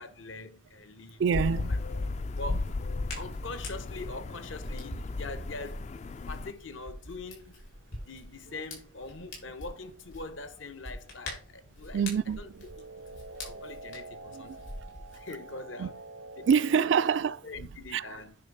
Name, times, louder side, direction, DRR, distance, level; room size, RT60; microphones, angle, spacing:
voice 1, 0.0-1.2 1.6-1.8 2.4-2.8 3.1-6.0 6.3-7.6 8.1-12.0 12.4-12.5 13.0-13.1 13.4-14.7 15.1-15.9 16.4-16.5 16.7-16.9 17.4-18.4, left 3 dB, 75° left, 1.0 m, -43 dB
Hands, 1.2-15.2, left 1 dB, 90° left, 4.4 m, -45 dB
voice 2, 1.2-1.8 11.9-12.6 13.5-13.6 14.3-14.6 15.8-15.9 16.5-17.4 17.9-18.2, right 7 dB, 65° right, 0.3 m, -26 dB
sound 1, 1.3-6.5, left 3 dB, 35° left, 0.3 m, -35 dB
sound 2, 12.5-17.4, right 2 dB, 85° right, 0.8 m, -46 dB
9.8 x 3.4 x 5.4 m
head